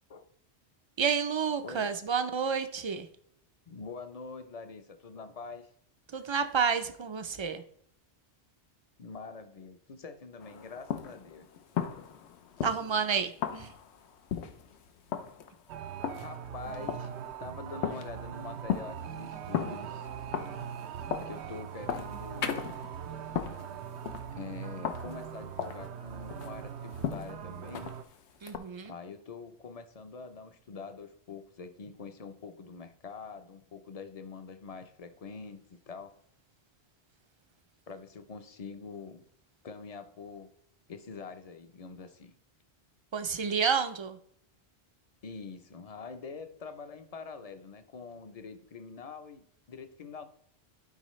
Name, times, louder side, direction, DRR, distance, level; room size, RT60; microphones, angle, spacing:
voice 1, 1.0-3.1 6.1-7.6 12.6-13.7 28.4-28.9 43.1-44.2, right 6 dB, 40° right, 0.4 m, -30 dB
voice 2, 3.7-5.7 6.1-6.2 9.0-11.5 16.2-20.4 21.3-22.8 24.3-28.0 28.8-36.1 37.9-39.2 39.6-40.5 40.9-42.3 45.2-50.3, left 4 dB, 40° left, 0.6 m, -45 dB
sound 1, 10.4-28.6, left 8 dB, 85° left, 1.0 m, -38 dB
sound 2, 15.7-28.0, right 8 dB, 80° right, 0.9 m, -41 dB
12.0 x 4.8 x 3.1 m
omnidirectional pair, 1.1 m